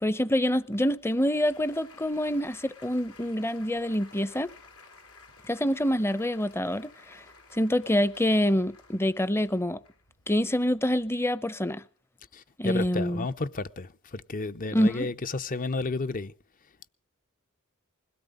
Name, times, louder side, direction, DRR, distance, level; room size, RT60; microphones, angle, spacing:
voice 1, 0.0-4.5 5.5-7.2 7.5-9.8 10.3-11.8 12.6-13.3 14.7-15.1, equal, 10° left, 0.7 m, -26 dB
Applause, 0.6-11.2, left 3 dB, 85° left, 3.5 m, -54 dB
voice 2, 12.3-16.3, left 3 dB, 40° left, 0.8 m, -32 dB
21.5 x 17.0 x 3.9 m
head